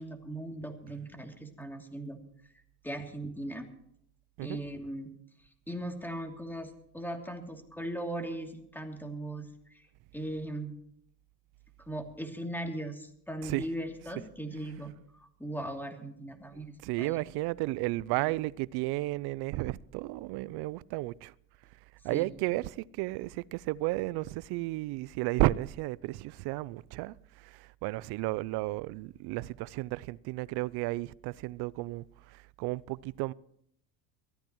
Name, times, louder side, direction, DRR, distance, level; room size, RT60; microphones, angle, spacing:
voice 1, 0.0-2.2 2.8-3.7 4.4-5.1 5.7-9.9 10.1-10.7 11.8-17.2 18.2-18.3 22.1-22.3, right 1 dB, 5° left, 2.8 m, -39 dB
voice 2, 16.5-21.3 22.0-33.3, right 19 dB, 60° right, 0.6 m, -33 dB
23.0 x 14.5 x 3.1 m
hypercardioid pair, 80°, 45 cm